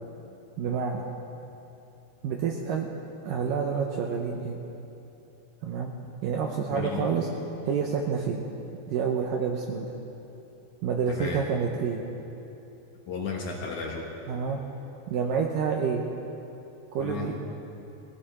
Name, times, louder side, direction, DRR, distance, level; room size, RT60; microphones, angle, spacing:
voice 1, 0.6-1.0 2.2-2.9 3.2-4.6 5.6-5.9 6.2-7.3 7.6-8.4 8.9-9.9 10.8-12.0 14.3-14.6 15.1-16.0 16.9-17.4, right 6 dB, 90° right, 1 dB, 1.9 m, -28 dB
voice 2, 6.7-7.1 11.1-11.4 13.1-14.1 17.0-17.3, left 5 dB, 65° left, -1 dB, 2.0 m, -34 dB
19.0 x 15.5 x 4.3 m, 3.0 s
omnidirectional pair, 4.9 m